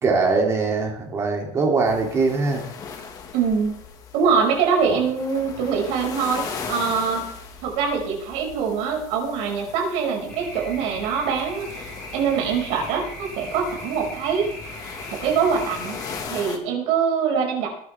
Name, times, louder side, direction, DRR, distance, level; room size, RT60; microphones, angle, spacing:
voice 1, 0.0-2.6 4.9-5.0, right 4 dB, 25° right, 1 dB, 2.9 m, -22 dB
sound 1, 1.9-16.6, left 5 dB, 30° left, 1.8 m, -39 dB
voice 2, 3.3-3.8 4.1-7.3 7.6-14.5 14.8-16.0 16.3-17.7, right 6 dB, 65° right, 1 dB, 5.8 m, -24 dB
sound 2, 10.3-16.2, equal, 10° left, 7.5 m, -39 dB
21.0 x 11.0 x 3.6 m, 0.71 s
cardioid pair, 175°, 13 cm